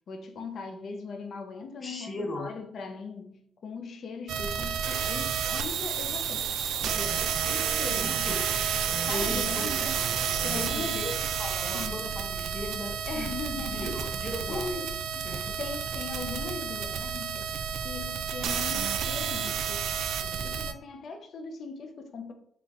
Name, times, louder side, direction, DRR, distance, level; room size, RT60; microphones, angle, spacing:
voice 1, 0.1-8.2 8.9-10.0 10.4-11.1 11.7-12.1 13.1-14.0 14.5-17.6 17.8-22.3, left 4 dB, 60° left, 0.5 m, -39 dB
voice 2, 1.8-2.5 8.0-8.4 9.1-9.8 10.5-11.1 11.4-13.4 13.7-14.8 15.2-15.6, left 1 dB, 30° left, 0.8 m, -37 dB
sound 1, 4.3-20.7, right 7 dB, 80° right, 0.3 m, -30 dB
4.0 x 2.2 x 3.6 m
cardioid pair, 90°, 0 cm